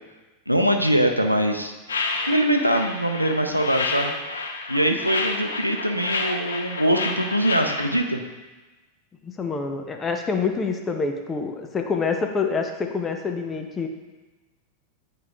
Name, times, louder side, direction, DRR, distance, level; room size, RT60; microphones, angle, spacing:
voice 1, 0.5-1.7 2.3-4.1 4.7-8.2, right 1 dB, 90° right, 4 dB, 0.5 m, -22 dB
sound 1, 1.9-8.0, left 3 dB, 70° left, 0.7 m, -29 dB
voice 2, 9.2-13.9, left 4 dB, 20° left, 4 dB, 0.6 m, -26 dB
9.7 x 4.8 x 2.3 m, 1.2 s
figure-of-eight pair, 90°, 0 cm